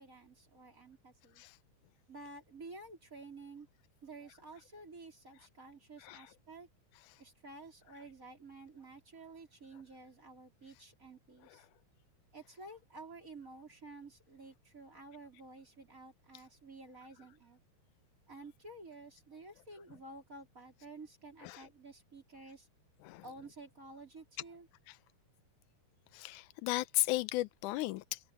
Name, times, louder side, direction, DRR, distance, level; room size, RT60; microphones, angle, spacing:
voice 1, 0.0-1.4 2.1-3.7 4.0-6.7 7.2-11.6 12.3-17.6 18.3-22.7 23.2-24.7, right 3 dB, 25° right, 4.7 m, -52 dB
voice 2, 26.1-28.2, left 19 dB, 75° left, 2.1 m, -35 dB
omnidirectional pair, 3.8 m